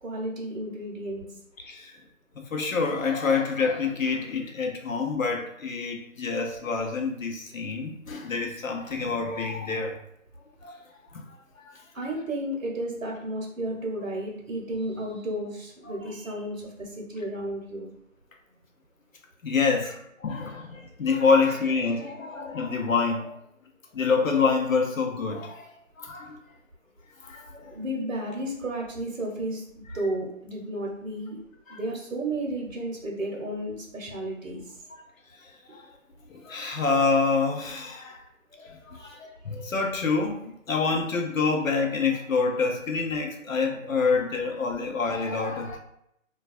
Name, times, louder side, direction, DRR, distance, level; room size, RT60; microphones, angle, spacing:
voice 1, 0.0-1.2 11.9-17.9 27.7-31.4 31.7-34.6 39.0-39.2, right 1 dB, 70° right, -1 dB, 0.8 m, -33 dB
voice 2, 2.4-10.0 10.6-10.8 11.6-11.7 15.9-16.0 19.4-23.4 23.9-25.7 26.0-26.4 27.2-27.7 31.7-31.8 34.9-35.0 35.7-35.8 36.3-38.2 38.5-45.8, left 4 dB, 75° left, 2 dB, 0.6 m, -27 dB
2.3 x 2.2 x 2.4 m, 0.76 s
figure-of-eight pair, 165°, 40 cm